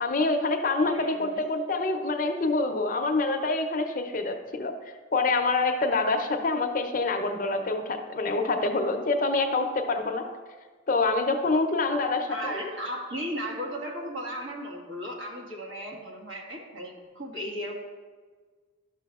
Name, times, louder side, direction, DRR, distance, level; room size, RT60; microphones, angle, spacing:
voice 1, 0.0-4.7 5.1-10.3 10.9-12.5, left 3 dB, 45° left, 5 dB, 0.6 m, -26 dB
voice 2, 0.8-1.4 12.3-17.8, equal, 70° right, -2 dB, 1.6 m, -36 dB
12.0 x 6.4 x 2.4 m, 1.5 s
head